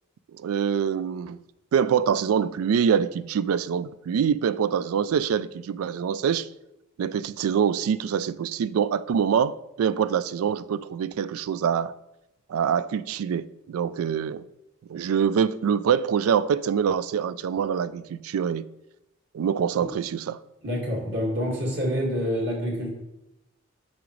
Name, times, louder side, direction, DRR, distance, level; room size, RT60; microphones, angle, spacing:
voice 1, 0.4-1.4 1.7-6.5 7.0-12.0 12.5-14.4 14.9-18.6 19.3-20.4, right 7 dB, 80° right, 0.3 m, -25 dB
voice 2, 20.6-22.9, equal, 55° right, 2.0 m, -27 dB
8.8 x 5.9 x 3.1 m
head